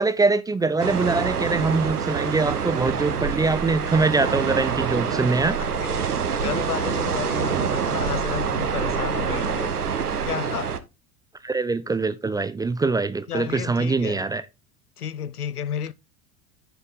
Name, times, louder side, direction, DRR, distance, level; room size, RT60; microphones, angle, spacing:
voice 1, 0.0-5.6 11.4-14.4, right 3 dB, 10° right, 0.4 m, -23 dB
sound 1, 0.8-10.8, right 6 dB, 85° right, 1.0 m, -26 dB
voice 2, 5.6-6.0 6.3-9.8 10.2-10.7 13.3-14.2 15.0-15.9, left 9 dB, 85° left, 0.6 m, -32 dB
10.0 x 5.4 x 4.0 m
figure-of-eight pair, 75°, 45 cm